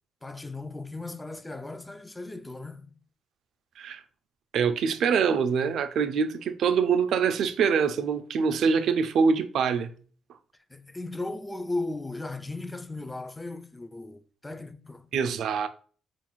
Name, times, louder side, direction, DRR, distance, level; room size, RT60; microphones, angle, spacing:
voice 1, 0.2-2.9 10.7-15.1, left 2 dB, 15° left, 0.3 m, -36 dB
voice 2, 4.5-9.9 15.1-15.7, right 6 dB, 75° right, 0.3 m, -24 dB
3.9 x 2.5 x 2.9 m
cardioid pair, 90°, 0 cm